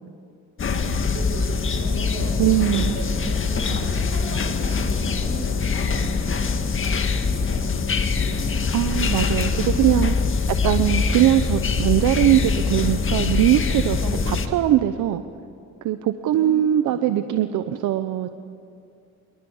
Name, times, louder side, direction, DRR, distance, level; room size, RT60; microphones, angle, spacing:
sound 1, 0.6-14.5, left 5 dB, 40° left, 1.9 m, -23 dB
voice 1, 0.7-8.8 10.2-10.9 13.9-14.4 16.3-17.0, right 2 dB, 60° right, 1 dB, 7.9 m, -38 dB
voice 2, 2.4-3.0 8.7-10.1 10.5-15.2 15.8-18.3, right 12 dB, 85° right, 9 dB, 0.9 m, -21 dB
26.0 x 23.0 x 7.2 m, 2.5 s
cardioid pair, 90°, 30 cm